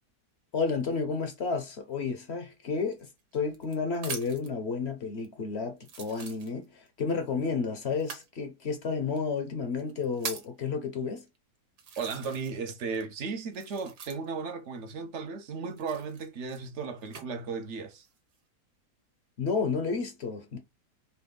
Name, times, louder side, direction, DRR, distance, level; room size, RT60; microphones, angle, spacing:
voice 1, 0.5-3.1 3.3-11.2 19.4-20.6, left 5 dB, 50° left, 0.9 m, -31 dB
sound 1, 2.9-4.6 5.2-5.3 5.8-6.9 8.0-8.3 9.2-9.3 9.8-10.6 11.3-11.4 11.8-12.7 12.9-14.5 15.7-17.3 17.9-18.4, right 6 dB, 85° right, 1.6 m, -42 dB
voice 2, 12.0-18.1, right 5 dB, 55° right, 1.0 m, -35 dB
4.4 x 3.1 x 3.7 m
omnidirectional pair, 1.7 m